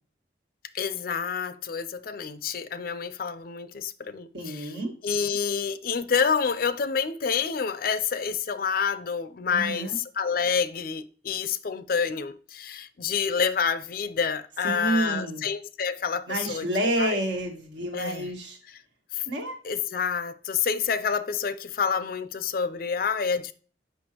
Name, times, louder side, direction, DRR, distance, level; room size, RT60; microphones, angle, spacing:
voice 1, 0.7-4.7 5.0-17.2 17.9-18.3 18.7-18.8 19.1-19.2 19.6-23.5, left 6 dB, 50° left, 0.4 m, -28 dB
voice 2, 4.3-4.9 9.5-10.0 14.6-15.4 16.3-18.6 19.3-19.6, right 1 dB, 70° right, 1.6 m, -29 dB
6.2 x 5.4 x 2.9 m
head